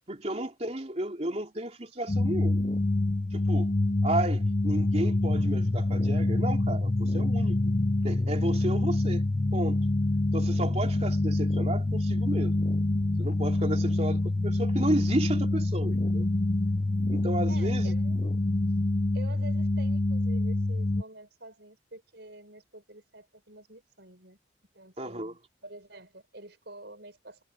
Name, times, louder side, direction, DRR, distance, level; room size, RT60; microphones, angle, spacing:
voice 1, 0.1-2.6 3.3-3.7 4.0-7.6 8.0-9.2 9.5-9.8 10.3-12.5 13.2-16.3 17.1-17.9 25.0-25.3, right 1 dB, 35° right, 3.2 m, -32 dB
sound 1, 2.1-21.0, left 2 dB, 30° left, 0.6 m, -26 dB
voice 2, 17.5-18.4 19.1-24.4 24.7-27.4, right 2 dB, 60° right, 6.9 m, -48 dB
head